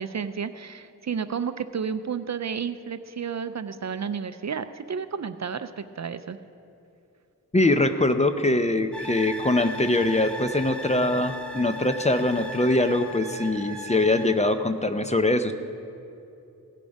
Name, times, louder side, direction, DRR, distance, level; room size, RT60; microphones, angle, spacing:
voice 1, 0.0-6.4, right 6 dB, 50° right, 11 dB, 0.5 m, -31 dB
voice 2, 7.5-15.5, left 2 dB, 20° left, 9 dB, 0.5 m, -23 dB
sound 1, 8.9-14.3, equal, 5° left, 1.0 m, -37 dB
17.0 x 8.4 x 5.3 m, 2.7 s
wide cardioid pair, 95°, 37 cm